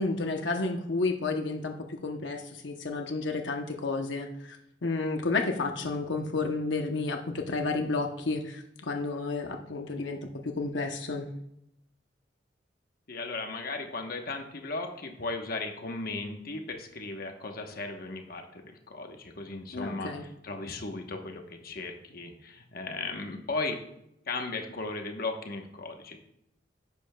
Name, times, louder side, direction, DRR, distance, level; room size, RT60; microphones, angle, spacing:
voice 1, 0.0-4.6 4.8-11.3 19.7-20.2, left 3 dB, 80° left, 3 dB, 0.9 m, -31 dB
voice 2, 13.1-23.8 24.3-26.2, left 3 dB, 55° left, 4 dB, 1.1 m, -36 dB
10.5 x 10.5 x 2.3 m, 0.78 s
head